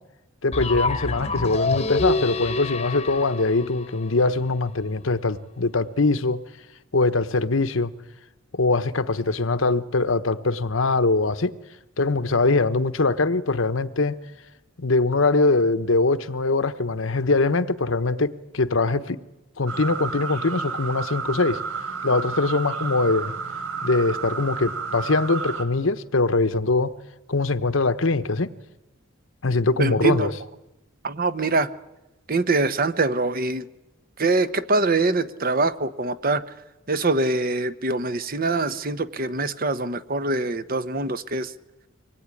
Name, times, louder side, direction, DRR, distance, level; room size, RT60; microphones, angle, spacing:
voice 1, 0.4-6.4 6.9-7.9 8.5-11.5 12.0-14.2 14.8-19.2 19.6-21.6 22.0-23.3 23.8-26.9 27.3-28.5 29.4-30.3, left 3 dB, 70° left, 1.1 m, -22 dB
sound 1, 0.5-4.5, left 2 dB, 30° left, 1.1 m, -27 dB
sound 2, 19.7-25.6, right 5 dB, 80° right, 3.4 m, -31 dB
voice 2, 29.8-30.3 31.0-31.7 32.3-33.7 34.2-36.4 36.9-41.5, right 3 dB, 45° right, 1.1 m, -24 dB
24.5 x 20.0 x 9.9 m
head